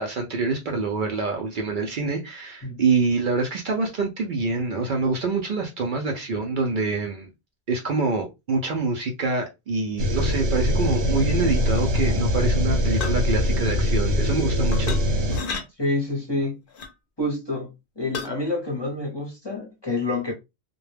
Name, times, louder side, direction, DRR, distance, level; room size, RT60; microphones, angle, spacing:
voice 1, 0.0-7.3 7.7-15.0, right 3 dB, 60° right, 0.6 m, -26 dB
sound 1, 10.0-15.4, left 1 dB, 85° right, 0.9 m, -22 dB
sound 2, 13.0-13.3 14.7-15.0 15.3-15.6 16.7-16.9 18.1-18.3, left 5 dB, 60° left, 0.7 m, -31 dB
voice 2, 15.8-16.6 17.2-17.7 18.0-20.3, left 2 dB, 25° left, 0.7 m, -27 dB
2.2 x 2.1 x 3.2 m
omnidirectional pair, 1.1 m